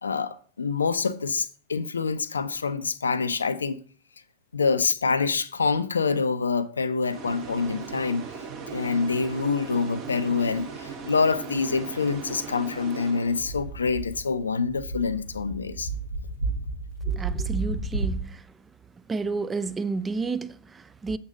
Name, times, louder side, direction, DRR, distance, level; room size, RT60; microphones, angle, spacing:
voice 1, 0.0-3.8 4.5-8.2 8.7-15.9, left 4 dB, 75° left, 0.5 m, -26 dB
sound 1, 7.1-13.8, right 5 dB, 40° right, 1.3 m, -38 dB
sound 2, 13.3-18.2, right 3 dB, 85° right, 1.8 m, -32 dB
voice 2, 17.1-18.4 19.1-21.2, right 4 dB, 15° right, 0.5 m, -31 dB
7.9 x 6.7 x 3.9 m
figure-of-eight pair, 90°, 0 cm